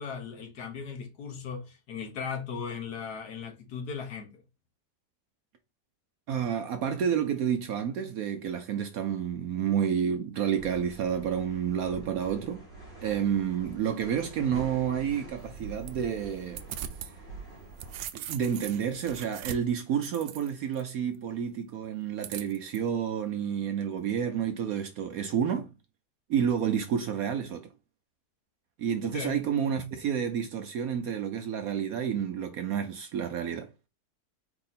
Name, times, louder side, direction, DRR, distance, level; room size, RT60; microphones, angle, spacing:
voice 1, 0.0-4.4 29.0-29.4, left 6 dB, 65° left, 1.5 m, -37 dB
voice 2, 6.3-12.6 13.0-16.6 18.1-25.7 26.3-27.7 28.8-33.7, right 8 dB, 70° right, 0.9 m, -30 dB
sound 1, 10.5-18.1, right 3 dB, 80° left, 2.4 m, -45 dB
sound 2, 15.4-17.1 17.5-20.8 22.2-22.8, right 10 dB, 85° right, 1.3 m, -41 dB
4.6 x 2.8 x 4.1 m
omnidirectional pair, 1.9 m